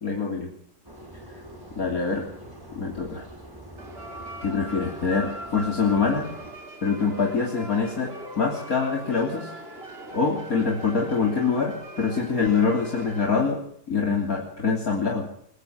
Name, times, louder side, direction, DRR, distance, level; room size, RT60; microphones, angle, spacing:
voice 1, 0.0-0.5 1.8-2.3 2.8-3.3 4.4-6.3 6.8-9.5 10.1-13.6 13.9-15.3, left 5 dB, 55° left, 1 dB, 3.7 m, -25 dB
sound 1, 0.8-6.5, right 1 dB, 10° right, 5.7 m, -44 dB
sound 2, 3.8-13.4, right 1 dB, 35° right, 3.7 m, -40 dB
21.5 x 21.0 x 6.1 m, 0.64 s
omnidirectional pair, 1.8 m